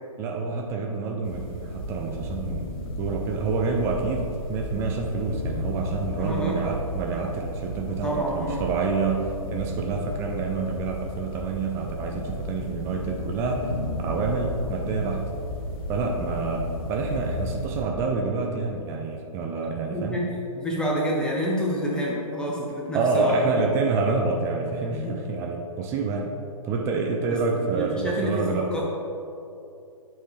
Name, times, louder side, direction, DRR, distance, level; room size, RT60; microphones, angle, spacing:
voice 1, 0.2-13.7 14.0-15.3 15.9-20.3 22.9-26.3 26.6-28.7, right 4 dB, 15° right, 2 dB, 0.4 m, -28 dB
sound 1, 1.2-17.8, left 1 dB, 40° left, 1.2 m, -33 dB
voice 2, 6.2-6.6 7.9-8.6 19.9-20.3 20.6-23.7 24.9-25.2 26.0-26.1 27.3-27.4 27.7-28.8, equal, 5° left, -4 dB, 0.7 m, -28 dB
8.7 x 4.6 x 3.2 m, 2.7 s
figure-of-eight pair, 125°, 18 cm